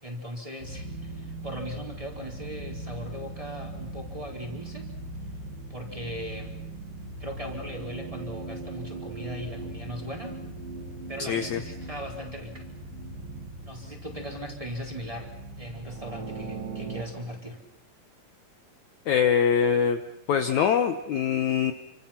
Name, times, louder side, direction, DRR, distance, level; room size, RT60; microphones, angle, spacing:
voice 1, 0.0-4.9 5.7-6.5 7.2-10.4 11.1-12.7 13.6-15.3 15.6-17.6, equal, 10° right, -1 dB, 4.1 m, -38 dB
sound 1, 0.6-17.0, right 2 dB, 70° right, 4.1 m, -39 dB
voice 2, 11.3-11.6 19.1-20.0 20.3-21.7, left 7 dB, 65° left, 7 dB, 2.1 m, -23 dB
29.0 x 26.0 x 5.9 m, 0.81 s
omnidirectional pair, 4.1 m